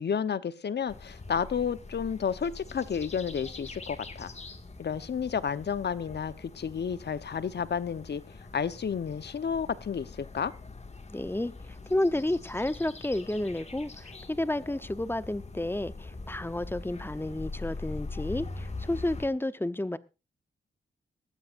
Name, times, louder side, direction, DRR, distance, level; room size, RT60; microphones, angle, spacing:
voice 1, 0.0-4.3 4.8-8.2 8.5-10.5, left 7 dB, 55° left, 1.0 m, -31 dB
sound 1, 0.9-19.3, left 3 dB, 30° left, 2.0 m, -43 dB
voice 2, 11.1-11.5 11.9-20.0, left 1 dB, 10° left, 0.8 m, -31 dB
19.5 x 14.5 x 2.6 m
cardioid pair, 95°, 21 cm